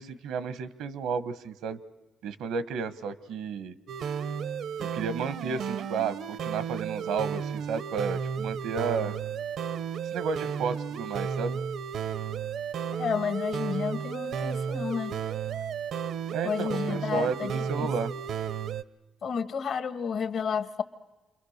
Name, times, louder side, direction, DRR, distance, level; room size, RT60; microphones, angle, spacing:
voice 1, 0.0-1.8 2.2-3.7 4.8-9.1 10.1-11.6 16.3-18.1, right 5 dB, 90° right, 15 dB, 1.2 m, -32 dB
sound 1, 3.9-18.8, right 7 dB, 70° right, 0.7 m, -33 dB
voice 2, 13.0-15.1 16.4-17.5 17.8-17.9 19.2-20.8, left 6 dB, 60° left, 11 dB, 1.4 m, -31 dB
28.5 x 23.0 x 6.6 m, 1.2 s
cardioid pair, 90°, 0 cm